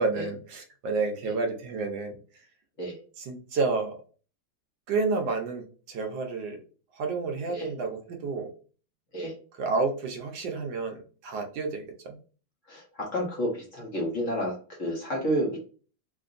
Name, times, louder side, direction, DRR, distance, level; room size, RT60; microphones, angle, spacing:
voice 1, 0.0-2.2 3.2-4.0 4.9-6.6 7.0-8.5 9.6-12.2, right 4 dB, 75° right, 3 dB, 1.4 m, -30 dB
voice 2, 12.7-14.5 14.8-15.6, equal, 50° left, -2 dB, 1.1 m, -30 dB
4.6 x 2.6 x 2.5 m, 0.38 s
omnidirectional pair, 2.1 m